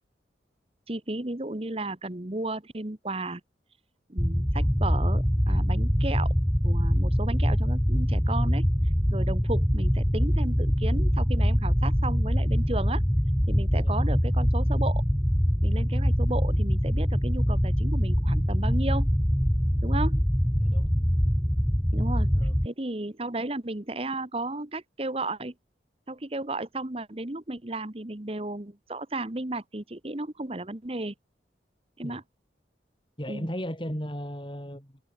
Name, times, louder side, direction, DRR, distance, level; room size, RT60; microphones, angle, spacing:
voice 1, 0.9-3.4 4.1-6.3 6.6-8.7 9.1-13.0 13.5-15.0 15.6-19.1 19.8-20.2 21.9-22.3 22.6-25.5 26.1-31.1 32.0-32.2 33.3-33.5, right 2 dB, 30° right, 1.2 m, -34 dB
sound 1, 4.2-22.7, equal, 5° left, 0.6 m, -24 dB
voice 2, 20.6-20.9 22.3-22.6 32.0-32.2 33.2-35.0, equal, 25° left, 7.4 m, -36 dB
open air
head